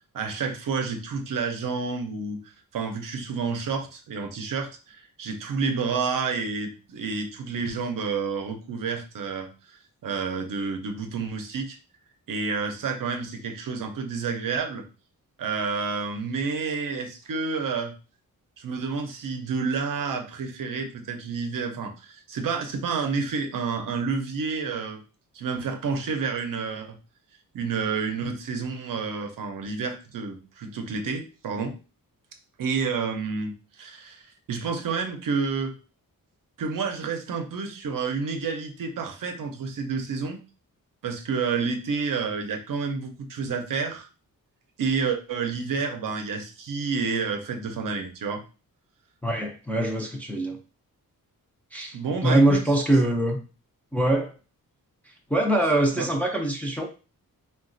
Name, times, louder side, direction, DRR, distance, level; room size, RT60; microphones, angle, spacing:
voice 1, 0.1-2.4 2.7-11.8 12.3-14.9 15.4-17.9 18.6-25.0 25.3-27.0 27.5-31.7 32.6-35.7 36.6-40.4 41.0-44.1 44.8-48.4 51.9-52.6 55.9-56.1, right 5 dB, 65° right, 5 dB, 0.6 m, -29 dB
voice 2, 49.2-50.6 51.7-52.0 52.2-53.4 53.9-54.3 55.1-56.9, right 1 dB, 5° left, 1 dB, 0.4 m, -23 dB
3.9 x 2.2 x 2.5 m, 0.34 s
wide cardioid pair, 150°, 35 cm